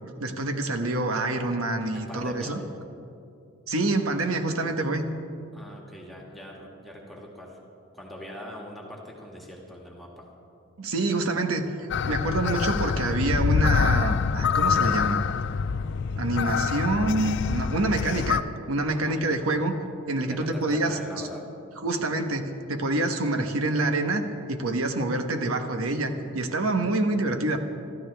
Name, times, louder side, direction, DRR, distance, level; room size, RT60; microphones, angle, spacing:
voice 1, 0.0-2.6 3.7-5.1 10.8-11.7 12.1-15.2 16.2-18.4 18.7-19.8 20.1-21.0 21.8-24.2 24.5-27.6, right 2 dB, 85° right, 5 dB, 1.1 m, -26 dB
voice 2, 1.9-2.6 5.5-7.6 7.9-10.3 18.9-19.2 20.2-21.5, left 1 dB, ahead, -2 dB, 1.9 m, -42 dB
sound 1, 11.9-18.4, left 6 dB, 55° left, 0.4 m, -25 dB
25.5 x 13.5 x 3.4 m, 2.6 s
head